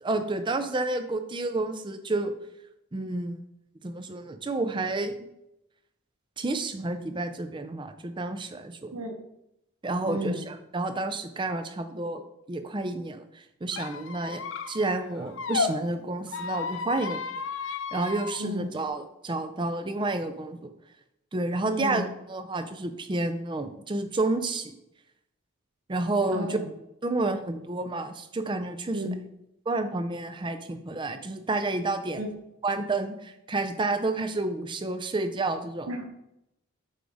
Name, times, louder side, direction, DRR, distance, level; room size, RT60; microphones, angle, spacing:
voice 1, 0.0-2.3 2.9-3.4 3.8-5.1 6.4-8.9 9.8-12.2 12.5-14.4 14.7-17.2 17.6-20.7 21.3-24.7 25.9-26.6 27.0-29.0 29.7-32.2 32.6-35.9, right 2 dB, 20° right, 8 dB, 0.5 m, -30 dB
voice 2, 10.1-10.4 18.4-18.7 21.6-22.1 26.3-26.7 28.9-29.2 32.1-32.3 35.9-36.1, equal, 80° right, 3 dB, 1.0 m, -32 dB
Squeak, 13.7-15.7 16.3-18.4, left 5 dB, 60° left, 0.6 m, -33 dB
7.9 x 3.5 x 4.9 m, 0.85 s
head